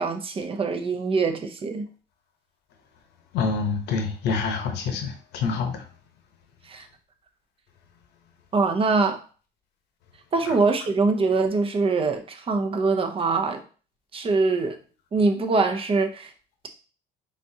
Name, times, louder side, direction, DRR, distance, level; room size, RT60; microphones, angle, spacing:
voice 1, 0.0-1.9 6.7-6.9 8.5-9.2 10.3-13.6 14.1-14.8 15.1-16.3, right 3 dB, 35° right, 0.7 m, -23 dB
voice 2, 3.3-5.8 10.5-10.6, left 5 dB, 85° left, 0.9 m, -27 dB
4.1 x 3.6 x 2.7 m
cardioid pair, 110°, 17 cm